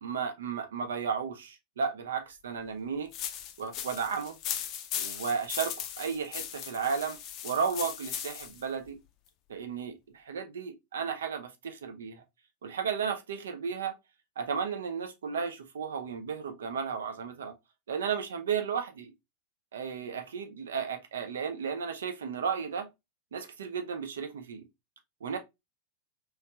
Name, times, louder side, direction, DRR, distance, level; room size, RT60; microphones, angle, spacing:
voice 1, 0.0-3.1 3.6-4.4 5.0-7.2 7.4-9.0 9.5-12.2 12.6-14.0 14.4-17.5 17.9-19.1 19.7-22.9 23.3-24.7 25.2-25.4, right 6 dB, 65° right, 0.6 m, -34 dB
sound 1, 3.1-8.6, left 10 dB, 40° left, 0.5 m, -38 dB
3.2 x 3.0 x 2.3 m
figure-of-eight pair, 90°, 0 cm